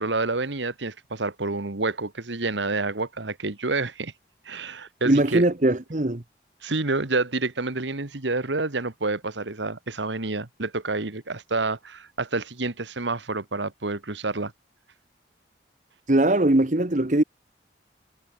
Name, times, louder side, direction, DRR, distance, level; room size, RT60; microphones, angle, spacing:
voice 1, 0.0-4.1 4.5-5.5 6.6-14.5, right 3 dB, 85° right, 1.7 m, -28 dB
voice 2, 5.0-6.2 16.1-17.2, right 1 dB, 45° right, 1.1 m, -20 dB
head